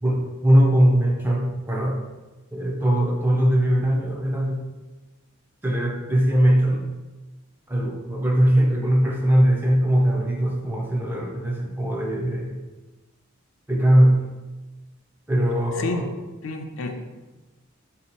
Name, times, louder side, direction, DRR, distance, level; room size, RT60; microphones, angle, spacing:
voice 1, 0.0-2.0 2.5-4.6 5.6-6.8 7.7-12.6 13.7-14.2 15.3-16.0, right 1 dB, 10° right, -1 dB, 0.5 m, -20 dB
voice 2, 15.8-16.1 16.4-17.0, left 3 dB, 65° left, 4 dB, 0.4 m, -29 dB
3.3 x 2.7 x 4.4 m, 1.2 s
head